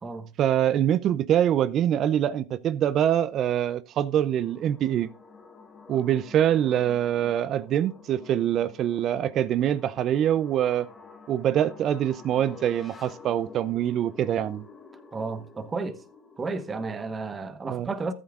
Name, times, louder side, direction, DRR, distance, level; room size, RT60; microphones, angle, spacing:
voice 1, 0.4-5.1 5.9-10.9 11.3-14.6 17.7-17.9, right 10 dB, 40° right, 0.5 m, -24 dB
sound 1, 3.9-17.0, left 4 dB, 20° left, 1.5 m, -50 dB
voice 2, 15.1-16.0 16.4-18.1, right 3 dB, 20° right, 1.1 m, -32 dB
14.0 x 8.8 x 2.4 m
supercardioid pair, 105°, 0 cm